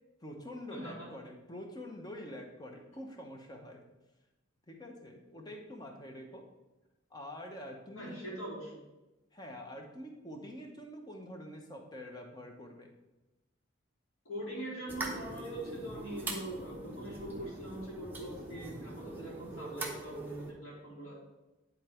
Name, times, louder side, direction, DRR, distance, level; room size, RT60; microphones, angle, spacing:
voice 1, 0.2-3.8 4.7-6.5 7.1-8.3 9.3-12.9, left 1 dB, 20° left, 2 dB, 1.0 m, -46 dB
voice 2, 7.9-8.9 14.2-21.1, right 1 dB, 85° left, -8 dB, 2.9 m, -42 dB
sound 1, 14.9-20.5, right 2 dB, 10° right, 0.9 m, -42 dB
9.9 x 4.0 x 4.4 m, 1.0 s
head